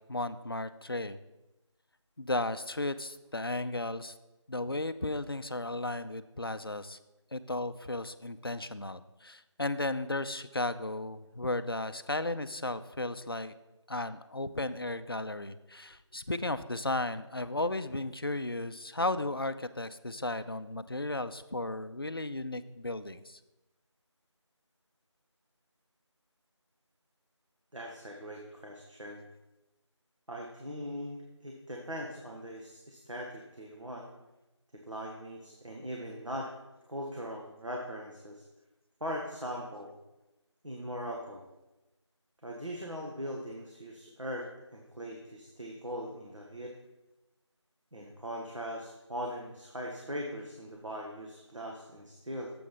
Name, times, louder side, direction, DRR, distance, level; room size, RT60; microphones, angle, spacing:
voice 1, 0.1-1.2 2.2-4.2 4.5-7.0 7.3-13.5 13.9-23.4, left 2 dB, 50° left, 11 dB, 0.4 m, -35 dB
voice 2, 27.7-29.2 30.3-34.1 34.7-36.5 36.9-38.4 39.0-39.9 40.6-41.4 42.4-46.7 47.9-52.5, equal, 80° right, -1 dB, 1.5 m, -40 dB
7.6 x 5.9 x 5.3 m, 0.98 s
figure-of-eight pair, 170°, 16 cm